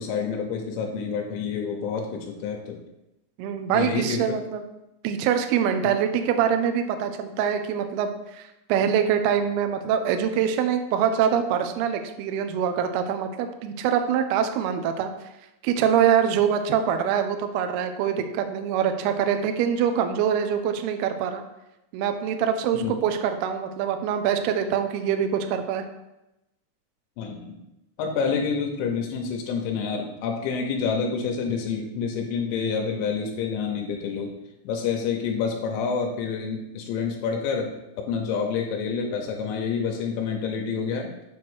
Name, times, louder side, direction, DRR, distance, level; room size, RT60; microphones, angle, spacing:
voice 1, 0.0-2.8 3.7-4.2 22.7-22.9 27.2-27.6 28.0-34.3 34.6-41.1, left 5 dB, 80° left, 2 dB, 3.0 m, -28 dB
voice 2, 3.4-4.6 5.0-15.1 15.6-21.4 21.9-25.8, right 8 dB, 85° right, 7 dB, 2.3 m, -24 dB
7.5 x 3.0 x 6.1 m, 0.93 s
omnidirectional pair, 5.2 m